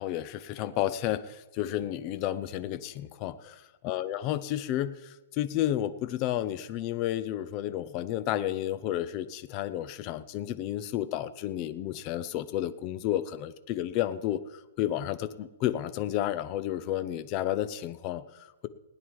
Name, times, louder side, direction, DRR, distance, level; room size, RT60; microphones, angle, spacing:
voice 1, 0.0-18.7, left 12 dB, 25° left, 13 dB, 0.5 m, -31 dB
17.5 x 9.8 x 4.7 m, 1.1 s
hypercardioid pair, 175°, 0 cm